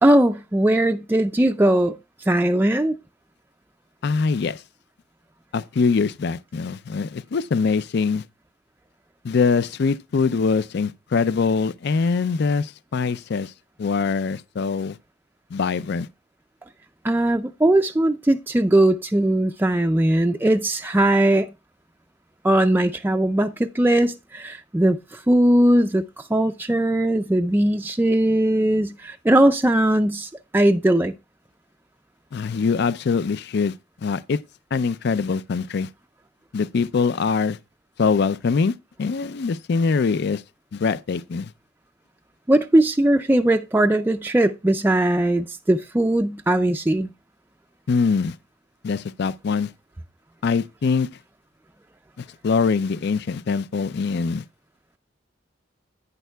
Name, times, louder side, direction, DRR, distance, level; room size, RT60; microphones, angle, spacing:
voice 1, 0.0-2.0 2.3-3.0 17.0-21.5 22.4-31.1 42.5-47.1, right 1 dB, 10° right, 0.4 m, -19 dB
voice 2, 4.0-4.6 5.5-8.2 9.2-13.5 13.8-15.0 15.5-16.1 32.3-33.7 34.0-34.4 34.7-35.9 36.5-37.6 38.0-40.4 40.7-41.5 47.9-48.3 48.8-49.7 50.4-51.1 52.2-54.4, left 5 dB, 60° left, 0.4 m, -23 dB
11.0 x 9.1 x 2.3 m
head